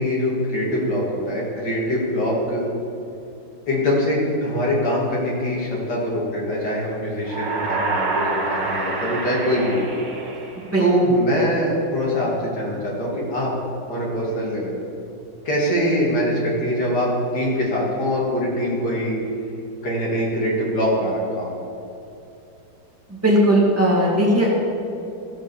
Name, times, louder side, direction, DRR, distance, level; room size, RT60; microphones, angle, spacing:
voice 1, 0.0-2.6 3.7-9.9 10.8-13.5 13.9-14.8 15.4-19.2 19.8-21.6, equal, 65° left, -5 dB, 3.1 m, -23 dB
sound 1, 7.2-11.0, right 3 dB, 75° right, 2.1 m, -27 dB
voice 2, 23.1-24.5, right 1 dB, 10° right, -5 dB, 2.5 m, -17 dB
14.5 x 5.2 x 7.1 m, 2.7 s
omnidirectional pair, 2.0 m